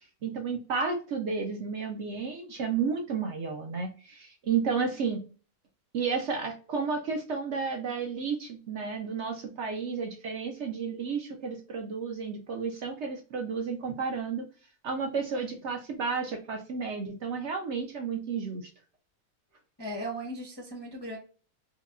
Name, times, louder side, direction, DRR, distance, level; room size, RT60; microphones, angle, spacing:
voice 1, 0.2-5.2 5.9-14.5 14.8-18.7, right 5 dB, 60° right, 4 dB, 0.8 m, -32 dB
voice 2, 19.8-21.2, right 1 dB, 30° left, -2 dB, 0.5 m, -37 dB
4.7 x 2.2 x 2.4 m, 0.37 s
omnidirectional pair, 1.6 m